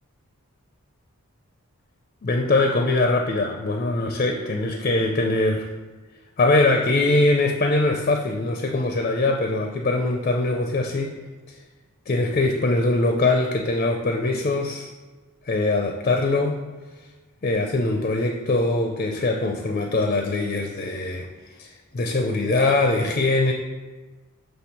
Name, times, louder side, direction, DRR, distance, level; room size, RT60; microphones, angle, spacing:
voice 1, 2.2-5.7 6.4-11.2 11.5-11.6 12.1-14.9 15.4-16.6 17.4-21.3 21.6-23.5, left 2 dB, 35° left, 3 dB, 0.4 m, -22 dB
6.1 x 3.2 x 5.7 m, 1.3 s
head